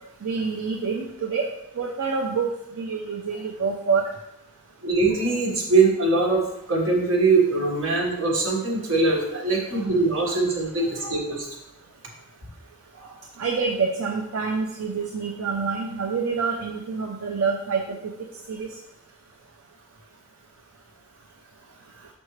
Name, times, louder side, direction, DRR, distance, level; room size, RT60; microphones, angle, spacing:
voice 1, 0.2-1.4 1.8-2.5 2.8-4.0 13.4-17.8 18.5-18.7, right 5 dB, 80° right, 0 dB, 0.6 m, -26 dB
voice 2, 4.8-6.4 6.7-11.5 13.0-13.1, right 3 dB, 65° right, -2 dB, 1.6 m, -22 dB
6.1 x 5.4 x 3.2 m, 0.85 s
head